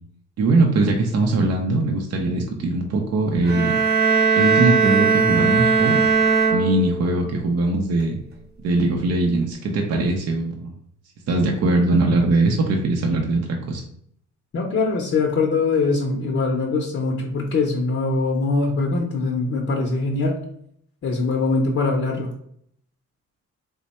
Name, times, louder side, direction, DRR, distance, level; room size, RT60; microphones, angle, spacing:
voice 1, 0.4-3.7 4.4-6.1 6.5-8.2 8.6-10.7 11.3-13.8, right 2 dB, 55° right, 1 dB, 0.6 m, -21 dB
sound 1, 3.4-7.3, right 5 dB, 35° right, 1.0 m, -19 dB
voice 2, 14.5-20.4 21.0-22.3, left 3 dB, 45° left, 1 dB, 0.6 m, -22 dB
3.3 x 2.1 x 4.1 m, 0.68 s
cardioid pair, 90°, 30 cm